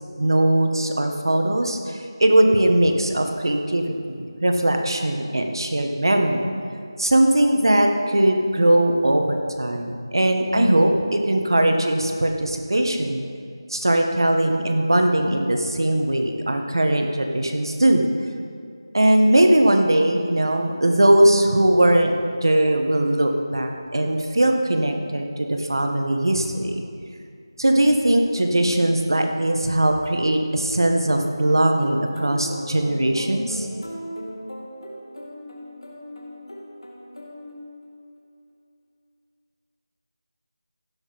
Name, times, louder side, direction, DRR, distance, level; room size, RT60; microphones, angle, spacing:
voice 1, 0.2-6.5 7.0-13.2 13.7-18.0 18.9-22.1 22.4-26.8 27.6-33.7, right 1 dB, 60° right, 4 dB, 1.4 m, -20 dB
sound 1, 30.7-38.1, equal, 65° left, 2.5 m, -38 dB
16.5 x 6.4 x 5.2 m, 2.3 s
figure-of-eight pair, 180°, 3 cm